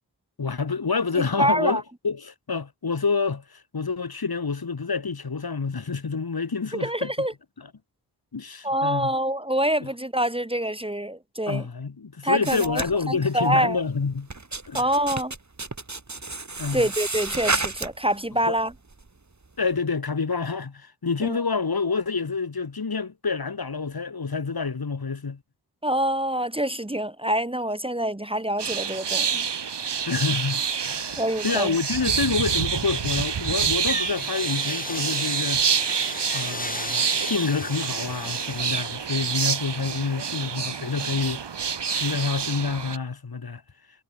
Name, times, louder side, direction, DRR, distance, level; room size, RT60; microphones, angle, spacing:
voice 1, 0.4-7.3 8.3-9.1 9.8-9.9 11.5-14.3 14.7-14.8 16.6-16.8 18.4-18.6 19.6-25.4 30.1-35.6 36.3-41.5 41.9-43.6, left 4 dB, 60° left, 4.0 m, -28 dB
voice 2, 1.1-1.8 6.8-7.3 8.6-11.7 12.2-13.8 14.7-15.3 16.7-18.7 21.2-21.4 25.8-29.4 31.2-31.8, right 1 dB, 15° right, 2.0 m, -26 dB
sound 1, 12.4-13.6 14.1-18.2 18.6-19.1, right 3 dB, 40° right, 7.6 m, -31 dB
sound 2, 28.6-43.0, right 7 dB, 75° right, 1.9 m, -27 dB
sound 3, 33.7-38.8, left 2 dB, 20° left, 4.9 m, -35 dB
wide cardioid pair, 70°, 41 cm